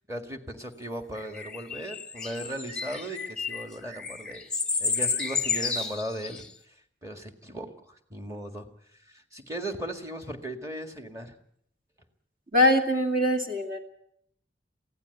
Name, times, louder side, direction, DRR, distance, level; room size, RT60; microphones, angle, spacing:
voice 1, 0.1-4.5 4.8-6.5 7.0-8.7 9.1-11.3, right 1 dB, 15° right, 6 dB, 1.9 m, -37 dB
sound 1, 1.2-6.5, left 5 dB, 5° left, 1.1 m, -31 dB
voice 2, 12.5-13.8, left 1 dB, 50° right, 4 dB, 2.5 m, -23 dB
23.5 x 16.0 x 8.1 m, 0.70 s
head